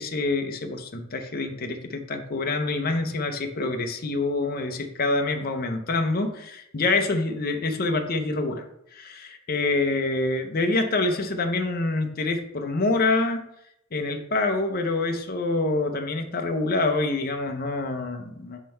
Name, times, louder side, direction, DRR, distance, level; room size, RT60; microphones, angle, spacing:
voice 1, 0.0-8.6 8.9-13.4 13.9-18.6, left 2 dB, 45° left, 6 dB, 0.7 m, -26 dB
6.3 x 3.8 x 4.4 m, 0.77 s
head